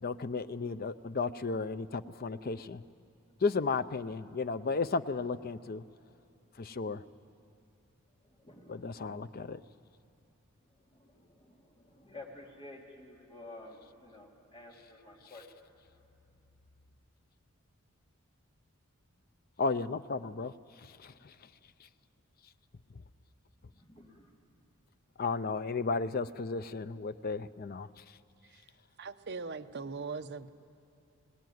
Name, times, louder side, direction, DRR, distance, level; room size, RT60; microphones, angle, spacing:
voice 1, 0.0-2.8 3.4-5.8 6.6-7.0 8.7-9.6 19.6-20.5 20.8-21.3 25.2-27.9, left 4 dB, 45° left, 13 dB, 0.5 m, -34 dB
voice 2, 8.3-9.2 10.8-15.5 23.7-24.3, left 2 dB, 25° left, -1 dB, 3.2 m, -52 dB
voice 3, 29.0-30.5, right 4 dB, 50° right, 7 dB, 0.9 m, -40 dB
23.5 x 18.5 x 9.4 m, 2.9 s
head